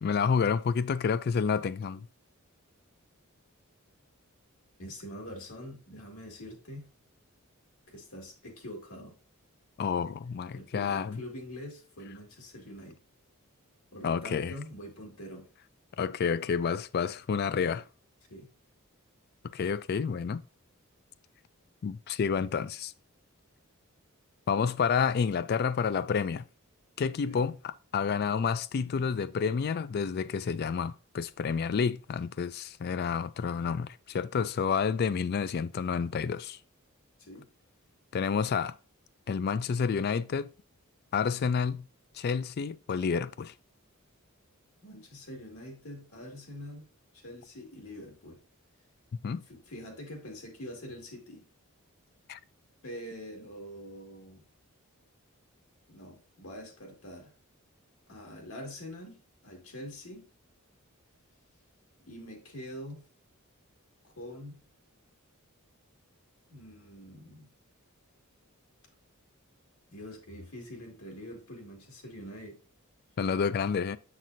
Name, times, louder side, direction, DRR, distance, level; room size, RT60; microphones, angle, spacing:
voice 1, 0.0-2.1 9.8-11.2 14.0-14.5 16.0-17.8 19.5-20.4 21.8-22.9 24.5-26.4 27.0-36.6 38.1-38.8 39.3-40.5 41.1-41.9 42.1-43.5 49.2-49.4 52.3-52.4 73.2-74.0, left 6 dB, 45° left, 0.3 m, -29 dB
voice 2, 4.8-6.9 7.9-9.1 10.5-13.0 13.9-15.5 18.3-18.5 27.2-27.5 37.2-37.5 44.8-46.9 47.1-48.4 49.5-51.5 52.8-54.5 55.9-57.3 58.1-60.3 62.1-63.1 64.0-64.6 66.5-67.5 69.9-72.6, equal, 75° left, 2.1 m, -44 dB
7.2 x 5.9 x 2.6 m
head